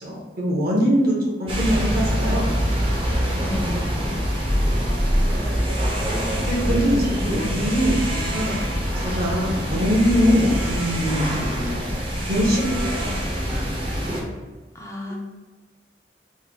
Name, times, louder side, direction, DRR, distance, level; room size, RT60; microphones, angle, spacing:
voice 1, 0.0-2.5 6.5-8.7 9.0-11.4 12.3-13.1 13.4-13.6, equal, 60° right, -3 dB, 0.9 m, -22 dB
sound 1, 1.5-14.2, equal, 30° right, 0.6 m, -24 dB
voice 2, 3.4-3.9 6.6-7.4 14.7-15.2, left 1 dB, 15° left, -1 dB, 0.4 m, -34 dB
3.1 x 2.1 x 3.8 m, 1.3 s
head